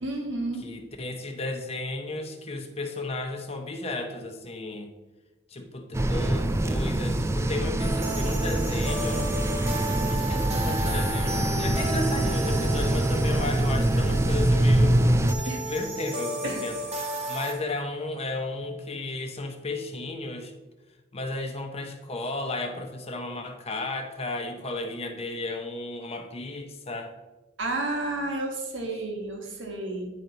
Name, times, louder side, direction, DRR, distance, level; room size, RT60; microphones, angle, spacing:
voice 1, 0.0-0.6 15.4-15.6 16.4-16.7 27.6-30.1, right 2 dB, 75° right, 2 dB, 1.4 m, -31 dB
voice 2, 0.6-4.9 5.5-9.3 9.7-20.5 21.1-27.1, left 2 dB, 35° left, 5 dB, 0.7 m, -34 dB
sound 1, 5.9-15.3, right 1 dB, 15° right, 0.3 m, -24 dB
sound 2, 7.8-17.5, right 1 dB, 35° right, 1.0 m, -33 dB
9.1 x 4.5 x 3.9 m, 1.2 s
head